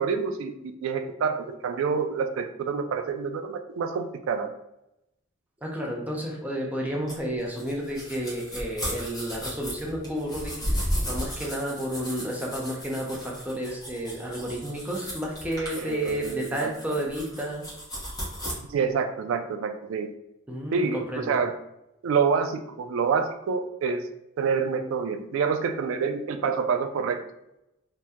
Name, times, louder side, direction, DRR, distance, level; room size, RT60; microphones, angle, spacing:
voice 1, 0.0-4.5 15.8-16.7 18.6-20.1 20.7-21.5 22.0-24.1 24.4-27.2, right 5 dB, 75° right, 7 dB, 0.3 m, -27 dB
voice 2, 5.6-17.6 20.5-21.4, equal, 5° right, -2 dB, 0.4 m, -31 dB
sound 1, 7.1-18.5, equal, 20° left, 0.8 m, -35 dB
2.7 x 2.1 x 3.4 m, 0.86 s
head